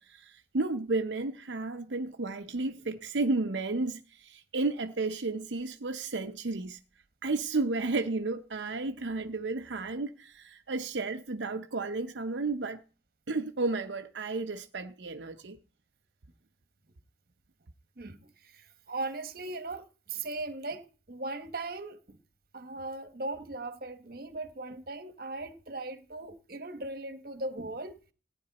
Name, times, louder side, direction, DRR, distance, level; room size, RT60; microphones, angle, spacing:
voice 1, 0.0-6.8 7.2-12.8 13.3-15.6, right 3 dB, 80° right, 0.7 m, -32 dB
voice 2, 18.0-22.2 22.5-27.9, right 2 dB, 55° right, 1.4 m, -39 dB
17.0 x 9.6 x 4.1 m
head